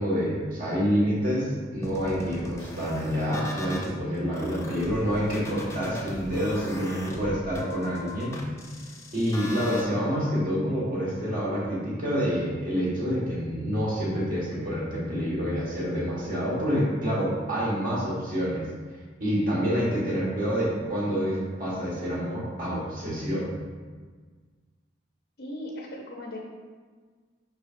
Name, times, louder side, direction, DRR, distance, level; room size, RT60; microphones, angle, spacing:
voice 1, 0.0-8.4 9.1-18.7 19.2-23.5, equal, 45° right, -6 dB, 1.7 m, -27 dB
sound 1, 1.8-3.9 4.3-9.8, left 1 dB, 15° left, 0.5 m, -39 dB
voice 2, 25.4-26.4, left 1 dB, 55° left, -1 dB, 0.8 m, -37 dB
6.5 x 5.6 x 2.6 m, 1.5 s
head